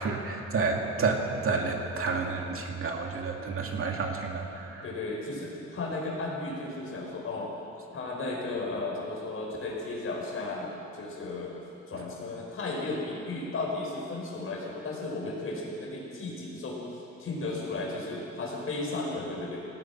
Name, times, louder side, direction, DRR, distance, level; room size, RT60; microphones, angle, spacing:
voice 1, 0.0-4.8, right 4 dB, 50° right, 1 dB, 2.3 m, -30 dB
voice 2, 4.8-7.5 7.9-11.6 11.9-19.7, left 2 dB, 45° left, -1 dB, 5.8 m, -34 dB
28.0 x 18.5 x 6.1 m, 3.0 s
cardioid pair, 160°, 29 cm